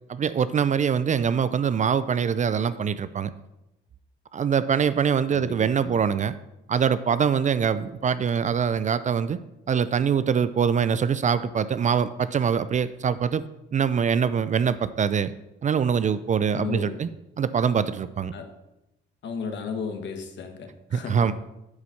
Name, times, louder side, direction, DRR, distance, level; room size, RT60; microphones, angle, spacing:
voice 1, 0.1-3.3 4.3-6.3 6.7-9.4 9.7-13.4 13.7-15.3 15.6-17.1 17.4-18.3 20.9-21.3, right 7 dB, 40° right, 15 dB, 0.4 m, -23 dB
voice 2, 16.5-17.0 18.3-18.5 19.2-21.3, left 5 dB, 65° left, 5 dB, 1.5 m, -34 dB
9.6 x 4.2 x 6.3 m, 0.91 s
cardioid pair, 90°, 20 cm